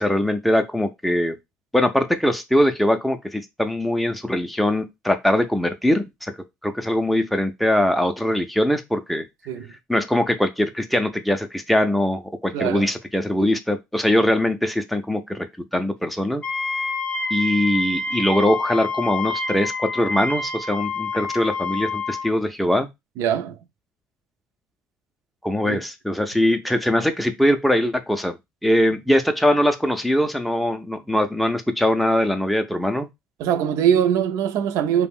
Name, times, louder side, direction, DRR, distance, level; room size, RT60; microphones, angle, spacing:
voice 1, 0.0-1.4 1.7-6.3 6.6-9.2 9.9-15.5 15.7-16.4 17.3-22.9 25.4-33.1, left 1 dB, ahead, 0.4 m, -22 dB
voice 2, 12.5-12.9 23.2-23.6 25.6-25.8 33.4-35.1, right 9 dB, 75° right, 0.4 m, -22 dB
Wind instrument woodwind instrument, 16.4-22.3, left 3 dB, 20° left, 0.8 m, -27 dB
2.4 x 2.1 x 3.5 m
cardioid pair, 110°, 5 cm